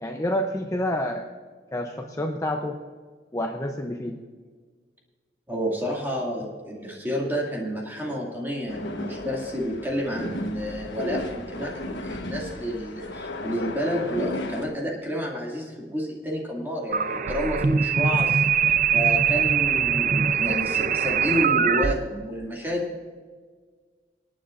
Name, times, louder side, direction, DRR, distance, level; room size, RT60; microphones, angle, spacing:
voice 1, 0.0-1.3 1.7-2.8 3.3-4.2, left 1 dB, 20° left, 3 dB, 0.6 m, -28 dB
voice 2, 5.5-18.5 18.9-23.0, equal, 10° right, -3 dB, 2.2 m, -30 dB
sound 1, 8.7-14.6, left 1 dB, 85° left, 1.2 m, -35 dB
sound 2, 16.9-21.9, right 7 dB, 45° right, 0.5 m, -22 dB
26.5 x 9.5 x 2.5 m, 1.6 s
head